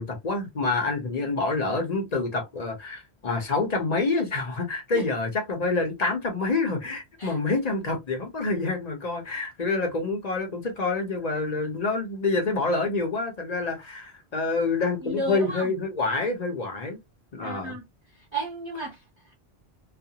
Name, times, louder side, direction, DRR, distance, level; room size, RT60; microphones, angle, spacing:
voice 1, 0.0-17.0 17.3-17.7, left 3 dB, 40° left, 0.8 m, -27 dB
voice 2, 15.0-15.7 17.4-17.8 18.1-19.3, right 1 dB, 30° right, 0.7 m, -34 dB
2.4 x 2.2 x 2.7 m
omnidirectional pair, 1.1 m